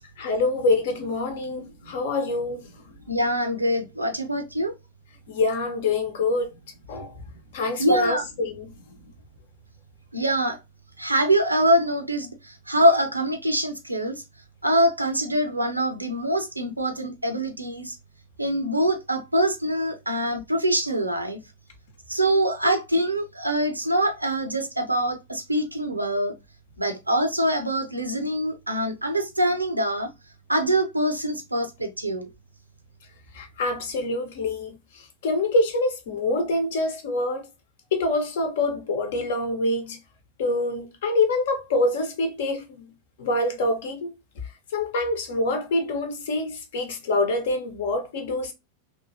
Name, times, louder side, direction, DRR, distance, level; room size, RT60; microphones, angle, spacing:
voice 1, 0.2-2.7 5.3-6.5 6.9-7.1 7.5-8.7 22.6-22.7 33.3-37.4 37.9-40.0 40.4-42.9 43.2-44.1 44.7-48.5, left 2 dB, 55° left, 0.9 m, -26 dB
voice 2, 3.1-4.7 7.8-8.2 10.1-10.6 11.0-14.2 14.6-18.0 18.4-21.4 22.1-26.3 26.8-30.1 30.5-32.3, right 1 dB, 85° right, 0.6 m, -24 dB
2.9 x 2.7 x 2.6 m
figure-of-eight pair, 90°, 0 cm